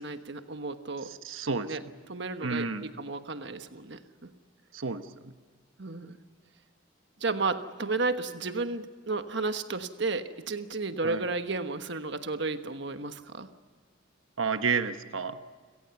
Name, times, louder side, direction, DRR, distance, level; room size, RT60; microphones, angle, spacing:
voice 1, 0.0-1.1 1.7-4.0 5.8-6.2 7.2-13.5, right 3 dB, 60° right, 9 dB, 1.3 m, -33 dB
voice 2, 1.2-1.7 2.4-2.8 4.7-5.0 11.0-11.2 14.4-15.4, right 5 dB, 85° right, 9 dB, 1.1 m, -30 dB
29.5 x 17.5 x 7.1 m, 1.5 s
head